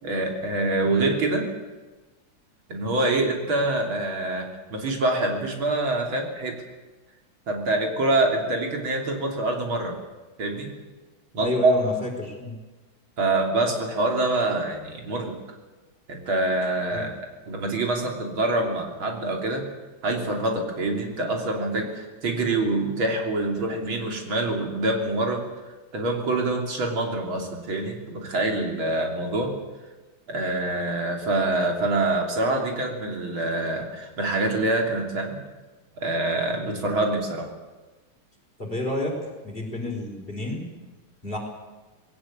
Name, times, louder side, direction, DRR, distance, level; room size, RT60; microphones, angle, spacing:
voice 1, 0.0-1.5 2.7-6.6 7.5-10.0 10.4-10.7 11.3-11.7 13.2-15.4 16.1-17.1 17.5-19.6 20.0-25.4 25.9-29.5 30.3-35.4 36.0-37.5, right 2 dB, 80° right, 2 dB, 3.8 m, -25 dB
voice 2, 11.4-12.5 16.9-17.0 38.6-39.2 39.4-40.6 41.2-41.4, left 1 dB, 25° left, 0 dB, 4.8 m, -29 dB
20.0 x 17.5 x 8.6 m, 1.2 s
omnidirectional pair, 2.2 m